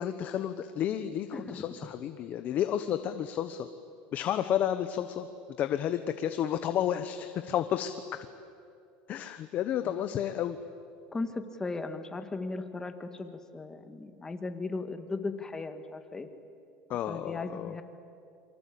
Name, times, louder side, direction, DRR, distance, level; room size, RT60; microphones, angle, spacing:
voice 1, 0.0-3.7 4.1-5.3 5.6-8.2 9.1-10.6 16.9-17.8, left 10 dB, 45° left, 10 dB, 1.1 m, -31 dB
voice 2, 11.1-16.3 17.1-17.8, left 3 dB, 15° left, 8 dB, 1.9 m, -37 dB
27.0 x 24.5 x 8.7 m, 2.5 s
supercardioid pair, 130°, 4 cm